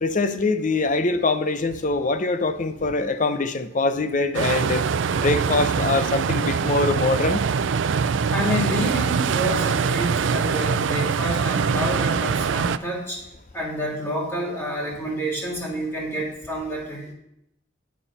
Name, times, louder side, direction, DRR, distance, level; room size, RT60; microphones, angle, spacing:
voice 1, 0.0-4.9 5.2-7.4, left 3 dB, 40° left, 11 dB, 0.6 m, -23 dB
sound 1, 4.3-12.8, right 6 dB, 75° right, 0.4 m, -23 dB
voice 2, 8.3-13.2 13.5-17.1, equal, 15° left, -4 dB, 3.2 m, -28 dB
9.4 x 7.0 x 5.5 m, 0.81 s
head